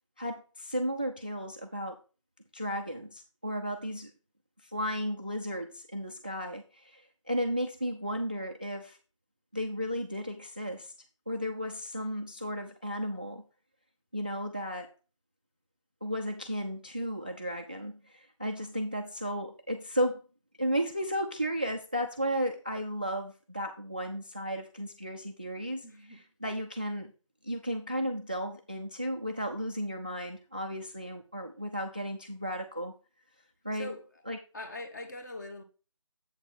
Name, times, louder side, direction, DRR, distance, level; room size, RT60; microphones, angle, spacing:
voice 1, 0.2-2.0 2.5-4.1 4.6-9.0 9.5-10.9 11.3-13.4 14.1-14.9 16.0-20.2 20.6-27.1 27.4-32.9 33.6-34.4, equal, 15° right, 0.3 m, -34 dB
voice 2, 25.8-26.2 33.7-34.0 34.5-35.6, left 1 dB, 35° left, 1.5 m, -42 dB
7.9 x 6.6 x 3.6 m
figure-of-eight pair, 165°, 17 cm